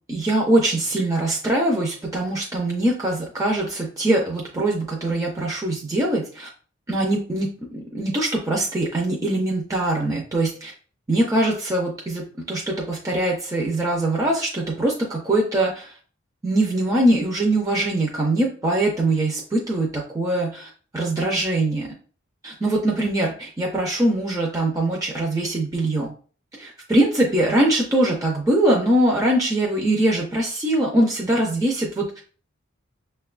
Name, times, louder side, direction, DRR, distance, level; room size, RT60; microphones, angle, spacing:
voice 1, 0.1-6.5 6.9-10.7 11.1-15.9 16.4-21.9 22.4-26.1 26.6-32.2, right 1 dB, 15° right, -2 dB, 0.4 m, -22 dB
6.2 x 2.2 x 2.3 m, 0.42 s
head